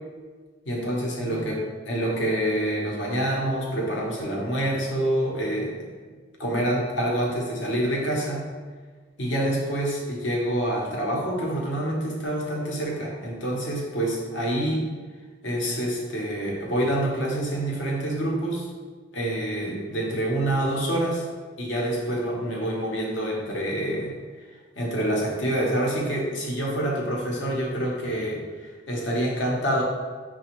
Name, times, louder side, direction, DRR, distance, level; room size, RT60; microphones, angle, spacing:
voice 1, 0.6-5.9 6.4-8.5 9.2-14.9 15.4-18.7 19.1-21.2 21.6-24.1 24.8-29.8, right 1 dB, 70° left, -2 dB, 0.8 m, -27 dB
5.9 x 2.3 x 2.9 m, 1.5 s
head